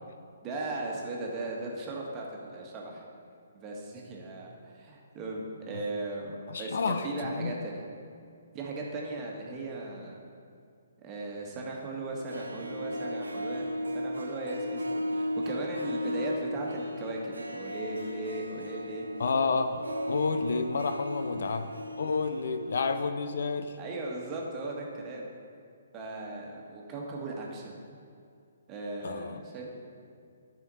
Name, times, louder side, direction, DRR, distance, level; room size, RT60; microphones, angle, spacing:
voice 1, 0.4-3.0 3.5-7.8 8.5-10.2 11.0-13.7 13.9-19.1 21.3-21.4 23.8-25.3 25.9-27.8 28.7-30.0, right 2 dB, 25° right, -2 dB, 1.5 m, -37 dB
voice 2, 6.5-7.5 19.2-21.7 22.0-23.8 29.0-29.4, left 4 dB, 65° left, 9 dB, 0.5 m, -30 dB
Harp, 12.1-23.1 23.4-23.5, equal, 80° right, 0.7 m, -36 dB
12.0 x 5.1 x 4.1 m, 2.4 s
figure-of-eight pair, 135°, 0 cm